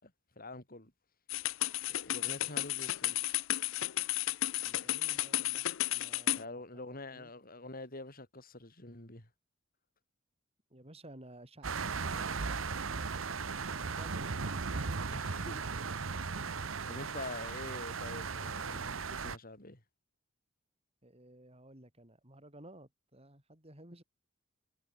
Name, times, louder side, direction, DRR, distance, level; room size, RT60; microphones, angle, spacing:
voice 1, 0.0-0.9 1.9-3.4 6.3-9.3 15.1-15.6 16.1-16.6 16.9-19.8, left 2 dB, 45° left, 6.0 m, -46 dB
sound 1, 1.3-6.4, left 15 dB, 75° left, 0.5 m, -33 dB
voice 2, 4.5-7.3 10.7-13.1 13.6-14.9 21.0-24.0, right 1 dB, 30° right, 5.7 m, -55 dB
sound 2, 11.6-19.4, right 5 dB, 80° right, 1.1 m, -37 dB
head